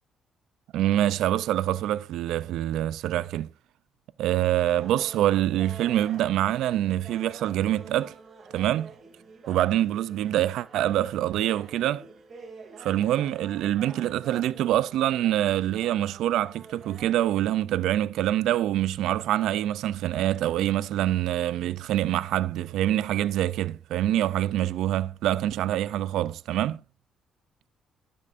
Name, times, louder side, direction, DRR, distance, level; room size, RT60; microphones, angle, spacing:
voice 1, 0.7-3.5 4.2-8.2 8.5-8.9 9.5-12.1 12.8-26.8, right 13 dB, 85° right, 0.3 m, -25 dB
sound 1, 4.7-17.5, right 4 dB, 50° right, 2.3 m, -48 dB
12.0 x 8.6 x 2.5 m
cardioid pair, 90°, 0 cm